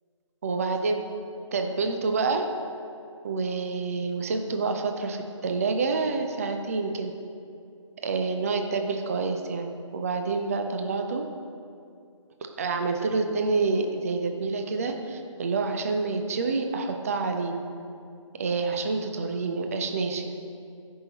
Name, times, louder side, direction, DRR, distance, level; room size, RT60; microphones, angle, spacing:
voice 1, 0.4-1.0 1.5-2.5 3.2-7.1 8.0-11.2 12.6-17.5 18.4-20.3, right 4 dB, 30° right, 5 dB, 0.4 m, -28 dB
13.0 x 5.5 x 2.9 m, 2.5 s
figure-of-eight pair, 150°, 17 cm